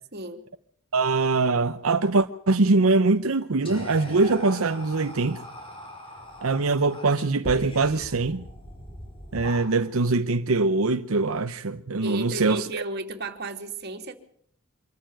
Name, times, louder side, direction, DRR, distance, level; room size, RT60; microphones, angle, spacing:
voice 1, 0.9-5.4 6.4-8.5 9.3-12.8, right 3 dB, 85° right, 0.8 m, -23 dB
Whispering, 3.6-10.1, left 1 dB, 25° left, 5.4 m, -41 dB
voice 2, 12.0-14.2, right 2 dB, 50° right, 2.8 m, -34 dB
25.0 x 14.0 x 9.0 m
head